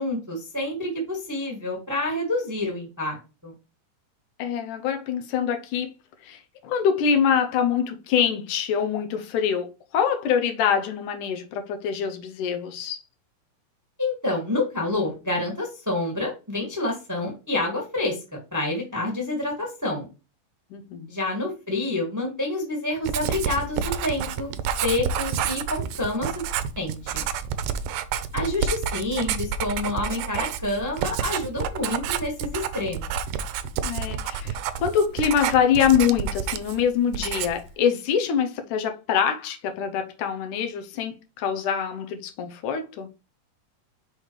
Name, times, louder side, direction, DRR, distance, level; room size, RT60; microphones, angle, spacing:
voice 1, 0.0-3.5 14.0-20.1 21.1-24.5 24.8-26.3 26.8-27.2 28.3-33.1, left 2 dB, 10° right, 1.3 m, -28 dB
voice 2, 4.4-5.9 6.2-13.0 20.7-21.1 33.8-43.1, left 7 dB, 80° left, 2.3 m, -25 dB
Writing, 23.0-36.8 37.1-37.7, right 7 dB, 80° right, 2.1 m, -29 dB
6.1 x 4.8 x 3.2 m
omnidirectional pair, 3.7 m